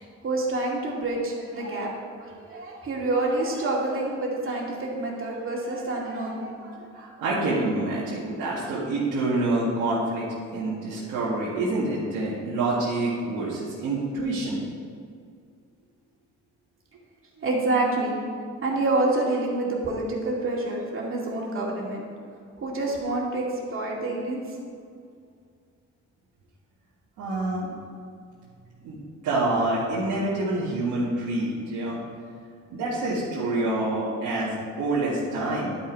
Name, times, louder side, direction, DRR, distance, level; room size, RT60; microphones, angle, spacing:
voice 1, 0.2-1.9 2.2-6.8 17.4-18.2 18.6-22.1 22.6-23.5 23.7-24.4, right 2 dB, 45° right, -3 dB, 2.4 m, -27 dB
voice 2, 6.9-10.3 10.5-14.7 27.2-27.7 28.8-29.0 29.2-32.0 32.7-35.8, right 2 dB, 85° right, -8 dB, 1.9 m, -27 dB
11.5 x 5.7 x 4.6 m, 2.2 s
cardioid pair, 90°, 30 cm